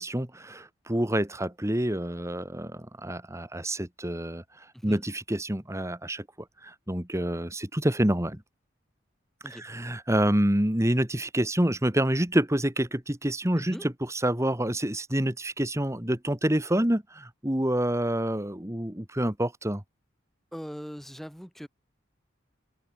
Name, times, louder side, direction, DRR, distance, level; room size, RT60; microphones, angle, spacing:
voice 1, 0.0-6.2 6.6-8.4 9.5-19.8, right 1 dB, 15° right, 1.9 m, -27 dB
voice 2, 13.6-13.9 20.5-21.7, equal, ahead, 5.8 m, -40 dB
head